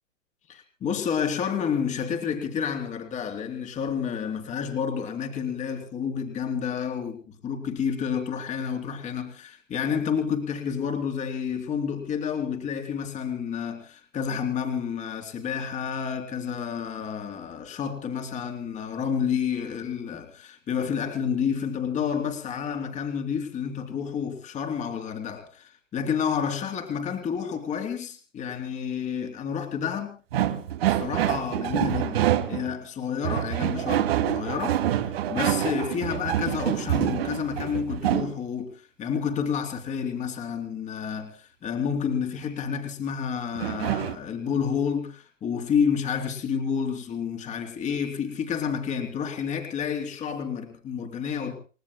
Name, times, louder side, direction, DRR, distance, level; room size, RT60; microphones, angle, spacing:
voice 1, 0.5-30.1 30.9-51.6, left 7 dB, 20° left, 3.7 m, -30 dB
sound 1, 30.3-32.7 33.2-38.3 43.6-44.2, right 11 dB, 50° right, 2.7 m, -26 dB
30.0 x 18.0 x 2.2 m
figure-of-eight pair, 120°, 38 cm